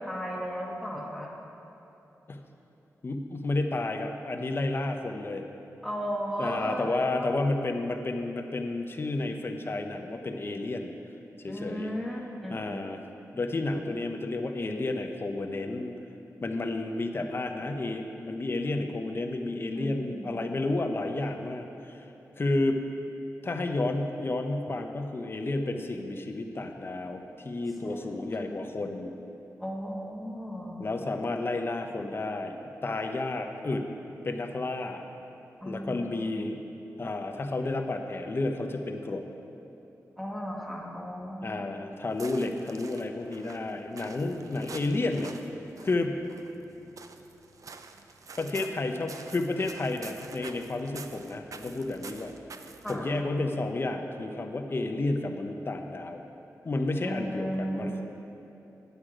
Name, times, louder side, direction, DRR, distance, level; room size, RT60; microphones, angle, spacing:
voice 1, 0.0-1.3 5.8-7.3 11.5-12.6 19.7-20.5 27.8-28.6 29.6-30.8 35.6-36.3 40.2-41.7 52.8-53.1 57.0-57.9, equal, ahead, -3 dB, 1.5 m, -35 dB
voice 2, 3.0-5.6 6.4-10.9 11.4-11.9 12.5-13.0 13.3-16.0 16.4-22.1 22.4-22.8 23.4-29.1 30.8-33.8 34.1-35.0 35.6-36.6 37.0-39.2 41.4-45.3 45.8-46.2 48.4-52.3 52.9-56.2 56.6-58.0, left 2 dB, 40° left, 5 dB, 0.7 m, -31 dB
sound 1, 42.1-53.2, right 4 dB, 65° right, 0.5 m, -48 dB
9.0 x 8.2 x 4.9 m, 3.0 s
wide cardioid pair, 110°, 6 cm